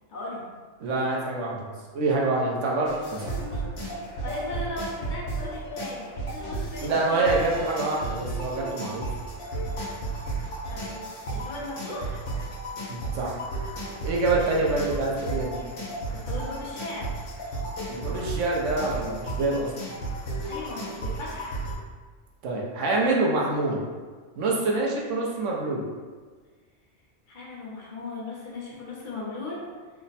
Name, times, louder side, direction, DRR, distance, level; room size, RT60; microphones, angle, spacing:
voice 1, 0.1-0.5 4.2-7.4 10.7-12.2 14.4-14.9 16.1-17.1 20.4-21.6 27.3-29.6, left 2 dB, 45° left, -5 dB, 1.0 m, -37 dB
voice 2, 0.8-3.3 6.8-9.0 12.9-13.4 14.0-15.6 17.9-19.7 22.4-23.9 24.4-25.8, right 2 dB, 85° right, -2 dB, 1.0 m, -26 dB
sound 1, 2.9-21.8, right 2 dB, 75° left, 1.2 m, -33 dB
3.4 x 2.1 x 4.0 m, 1.5 s
omnidirectional pair, 1.2 m